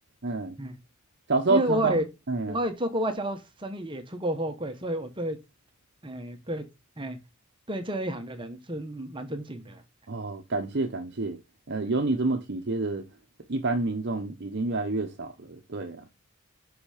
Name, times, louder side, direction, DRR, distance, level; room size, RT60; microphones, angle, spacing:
voice 1, 0.2-0.6 1.3-2.0 2.3-2.6 10.1-11.4 11.7-13.0 13.5-16.0, right 2 dB, 50° right, 0.8 m, -28 dB
voice 2, 1.5-2.0 2.5-5.4 6.0-6.7 7.0-7.2 7.7-9.8, right 1 dB, 20° right, 1.0 m, -30 dB
5.8 x 5.7 x 4.9 m
head